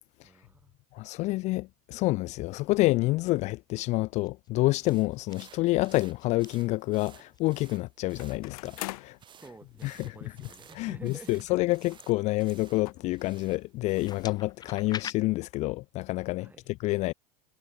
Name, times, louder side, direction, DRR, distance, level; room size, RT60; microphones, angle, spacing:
voice 1, 0.2-0.8 9.4-11.6 16.4-16.6, right 3 dB, 10° right, 5.6 m, -50 dB
voice 2, 0.9-9.2 9.8-10.4 10.7-17.1, left 20 dB, 40° left, 0.4 m, -28 dB
sound 1, 4.0-4.5 4.8-5.4 6.2-6.5 7.3-7.6 8.4-8.9 9.4-9.9 10.5-13.2 13.9-15.1, left 7 dB, 20° left, 5.0 m, -45 dB
sound 2, 4.8-14.3, right 8 dB, 25° right, 6.5 m, -56 dB
sound 3, 8.2-9.2 10.1-10.2 10.5-10.6 11.7-12.0 12.3-12.4 12.8-12.9, left 21 dB, 80° left, 1.7 m, -41 dB
supercardioid pair, 150°, 19 cm